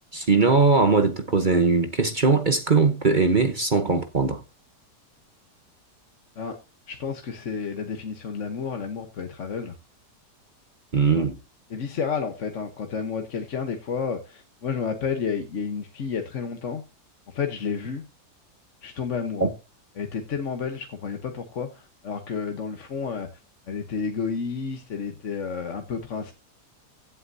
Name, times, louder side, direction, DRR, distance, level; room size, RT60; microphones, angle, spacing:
voice 1, 0.1-4.4 10.9-11.3 19.4-19.5, right 4 dB, 35° right, 1.0 m, -20 dB
voice 2, 6.9-9.8 11.1-11.3 11.7-16.8 17.3-18.1 18.8-19.5 20.0-23.3 23.7-26.3, left 6 dB, 50° left, 1.4 m, -31 dB
15.5 x 8.6 x 2.7 m
omnidirectional pair, 1.8 m